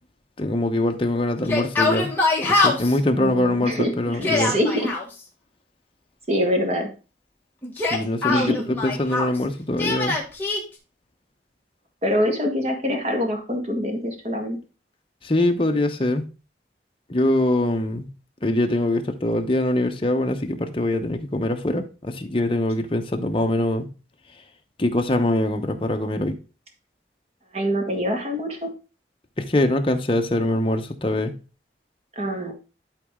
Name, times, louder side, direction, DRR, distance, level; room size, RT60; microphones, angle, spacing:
voice 1, 0.4-2.1 2.4-4.5 7.8-10.2 15.2-16.2 17.1-18.1 18.4-23.9 24.8-26.3 29.4-31.3, left 1 dB, 30° left, 0.9 m, -23 dB
Yell, 1.4-3.0 4.1-5.0 7.6-9.4 9.8-10.6, left 3 dB, 10° left, 1.8 m, -23 dB
voice 2, 3.1-4.9 6.3-6.9 8.3-8.7 12.0-14.6 27.5-28.7 32.2-32.5, equal, 35° right, 1.8 m, -25 dB
11.5 x 4.1 x 3.7 m
head